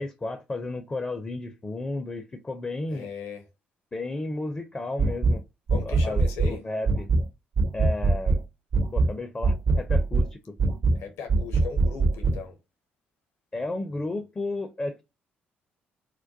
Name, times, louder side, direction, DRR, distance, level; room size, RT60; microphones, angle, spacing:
voice 1, 0.0-3.1 3.9-5.4 5.9-6.2 6.5-7.1 7.7-8.4 8.9-10.6 13.5-15.0, left 2 dB, 20° left, 0.4 m, -33 dB
voice 2, 2.9-3.4 5.7-6.6 10.9-12.6, left 5 dB, 55° left, 0.7 m, -38 dB
sound 1, 5.0-5.4 5.7-6.6 6.9-7.3 7.6-8.4 8.7-9.1 9.4-10.3 10.6-11.0 11.3-12.4, right 3 dB, 45° right, 0.5 m, -22 dB
2.2 x 2.2 x 2.5 m
figure-of-eight pair, 45°, 5 cm